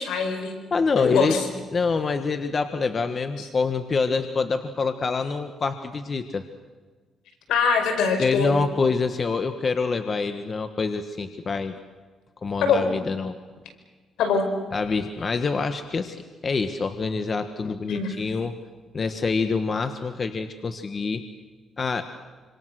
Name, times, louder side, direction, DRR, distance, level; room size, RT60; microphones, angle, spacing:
voice 1, 0.0-0.5 1.0-1.4 7.5-8.5 12.6-12.9 14.2-14.5 17.9-18.1, left 5 dB, 85° left, 5 dB, 5.2 m, -23 dB
voice 2, 0.7-1.4 1.7-6.4 8.2-11.7 12.4-13.4 14.7-16.2 16.4-18.6 18.9-21.2 21.8-22.0, left 4 dB, 40° left, 8 dB, 1.5 m, -26 dB
26.5 x 26.5 x 6.4 m, 1.4 s
cardioid pair, 90°, 0 cm